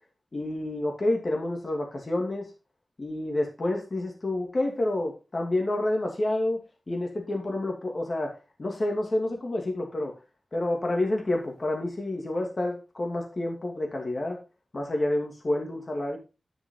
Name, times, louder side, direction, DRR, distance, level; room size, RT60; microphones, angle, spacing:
voice 1, 0.3-2.5 3.0-6.6 6.9-10.1 10.5-14.4 14.7-16.2, left 1 dB, 45° left, 1 dB, 2.7 m, -29 dB
11.0 x 6.2 x 3.9 m, 0.31 s
cardioid pair, 60°, 0 cm